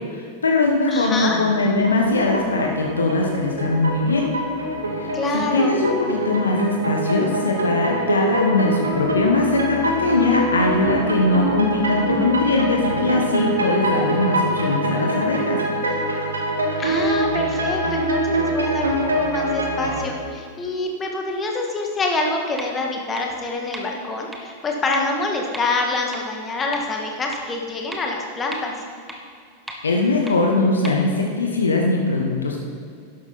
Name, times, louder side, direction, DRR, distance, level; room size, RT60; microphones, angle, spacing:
voice 1, 0.1-4.3 4.9-15.6 29.8-32.6, left 3 dB, 75° left, 1 dB, 1.3 m, -21 dB
voice 2, 0.9-1.4 5.1-5.8 16.8-28.7, left 2 dB, 20° left, 1 dB, 1.9 m, -26 dB
sound 1, 1.2-20.0, right 1 dB, 75° right, 1.8 m, -24 dB
sound 2, 22.6-22.7 23.2-23.3 23.7-23.8 24.3-24.4 24.9-25.0 25.5-25.6 26.1-26.2 26.7-26.8 27.3-27.4 27.9-28.0 28.5-28.6 29.1-29.2 29.7-29.8 30.3-30.4 30.8-30.9, equal, 5° right, 1.5 m, -34 dB
12.0 x 11.5 x 4.2 m, 2.2 s
figure-of-eight pair, 90°, 0 cm